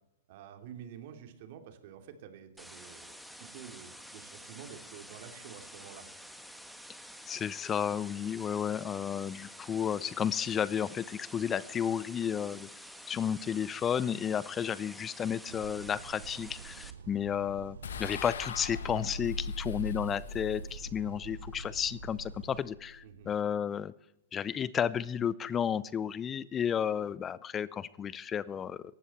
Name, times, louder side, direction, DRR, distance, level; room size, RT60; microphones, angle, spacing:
voice 1, 0.3-6.1 23.0-23.3, right 8 dB, 55° right, 6 dB, 2.7 m, -49 dB
sound 1, 2.6-16.9, equal, ahead, 1.5 m, -49 dB
voice 2, 7.3-23.9 24.3-28.8, left 8 dB, 25° left, 20 dB, 0.5 m, -32 dB
sound 2, 15.5-22.7, right 8 dB, 75° right, 0.5 m, -48 dB
sound 3, 17.8-23.2, left 4 dB, 75° left, 1.4 m, -41 dB
18.0 x 15.0 x 4.3 m, 0.84 s
hypercardioid pair, 110°, 0 cm